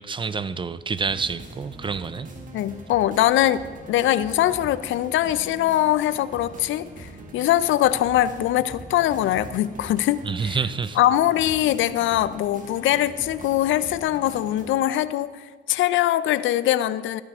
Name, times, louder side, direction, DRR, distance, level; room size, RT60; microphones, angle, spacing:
voice 1, 0.0-2.3 10.2-11.0, right 5 dB, 25° right, 15 dB, 0.4 m, -28 dB
sound 1, 1.0-14.7, right 2 dB, 40° right, 1.8 m, -42 dB
voice 2, 2.5-10.6 11.0-17.2, left 13 dB, 75° left, 16 dB, 0.4 m, -22 dB
14.0 x 9.1 x 3.5 m, 1.5 s
cardioid pair, 90°, 20 cm